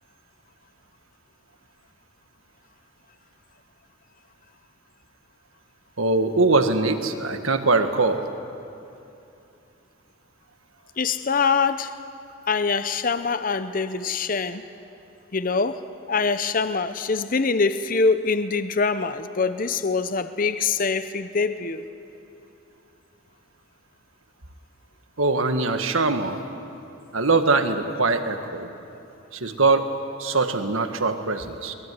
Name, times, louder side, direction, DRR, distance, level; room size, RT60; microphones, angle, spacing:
voice 1, 6.0-8.2 25.2-26.4 27.1-28.7 29.3-29.9 30.2-31.7, right 3 dB, 75° right, 7 dB, 1.6 m, -22 dB
voice 2, 11.0-12.0 12.5-14.6 15.3-15.8 16.1-21.8, left 4 dB, 40° left, 11 dB, 0.7 m, -24 dB
23.0 x 20.5 x 9.6 m, 2.8 s
head